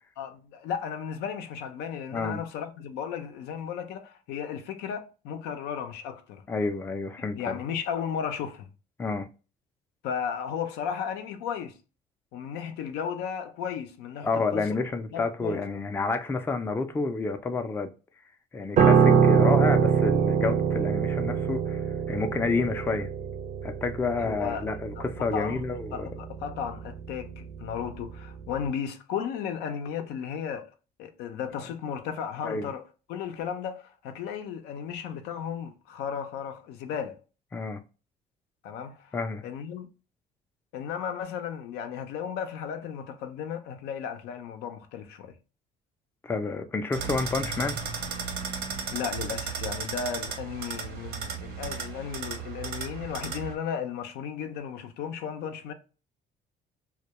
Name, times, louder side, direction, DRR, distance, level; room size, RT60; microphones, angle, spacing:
voice 1, 0.2-6.4 7.2-8.7 10.0-11.8 12.3-14.7 15.1-15.7 24.2-24.7 25.0-25.6 25.9-30.7 31.0-32.8 33.1-37.2 38.6-39.2 39.4-39.9 40.7-45.3 48.9-55.7, left 7 dB, 85° left, 0.5 m, -35 dB
voice 2, 6.5-7.6 9.0-9.3 14.2-17.9 18.5-23.1 23.6-26.1 32.4-32.7 37.5-37.8 39.1-39.4 46.2-48.1, left 3 dB, 15° left, 0.3 m, -29 dB
Piano, 18.8-28.1 28.4-28.7, right 7 dB, 45° right, 0.4 m, -24 dB
sound 1, 46.9-53.5, right 6 dB, 75° right, 0.7 m, -35 dB
2.2 x 2.1 x 2.8 m
cardioid pair, 110°, 17 cm